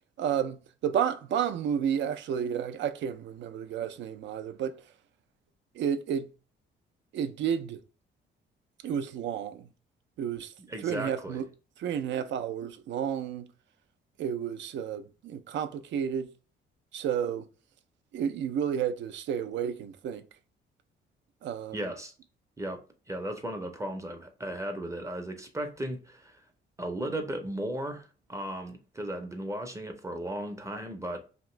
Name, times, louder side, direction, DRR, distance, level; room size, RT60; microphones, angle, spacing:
voice 1, 0.2-4.8 5.7-6.3 7.1-7.8 8.8-9.7 10.2-10.5 10.8-11.4 11.8-13.5 14.2-16.3 16.9-17.5 18.1-20.2 21.4-21.9, right 8 dB, 65° right, 0.4 m, -31 dB
voice 2, 10.7-11.4 21.7-22.1 22.6-22.8 23.1-26.4 26.8-31.3, right 1 dB, 15° right, 0.5 m, -36 dB
2.9 x 2.5 x 3.0 m
cardioid pair, 90°, 20 cm